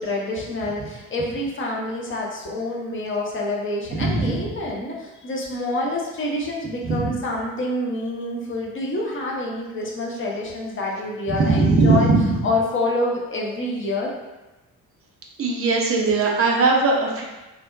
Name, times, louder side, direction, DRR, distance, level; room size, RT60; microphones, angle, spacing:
voice 1, 0.0-12.1 12.4-14.1, left 2 dB, 25° left, -2 dB, 0.7 m, -27 dB
voice 2, 3.9-4.4 6.8-7.1 11.4-12.4 15.4-17.2, right 3 dB, 30° right, -1 dB, 0.6 m, -19 dB
3.2 x 2.1 x 2.5 m, 1.1 s
figure-of-eight pair, 40°, 46 cm